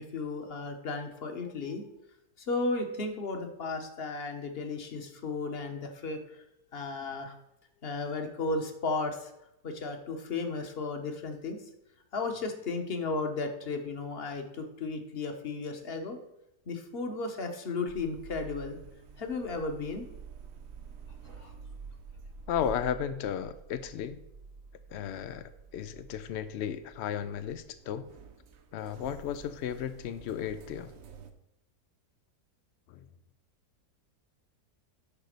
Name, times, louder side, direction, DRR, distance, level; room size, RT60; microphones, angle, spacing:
voice 1, 0.0-1.8 2.4-6.4 6.7-7.3 7.8-9.3 9.6-11.6 12.1-16.2 16.7-18.8 19.2-20.1 21.4-21.5, left 3 dB, 40° left, 5 dB, 1.2 m, -34 dB
sound 1, 17.9-31.3, right 5 dB, 60° right, 1.2 m, -49 dB
voice 2, 22.5-24.2 24.9-28.1 28.7-30.9 32.9-33.0, left 9 dB, 80° left, 11 dB, 0.6 m, -34 dB
10.0 x 4.0 x 6.5 m, 0.86 s
omnidirectional pair, 1.7 m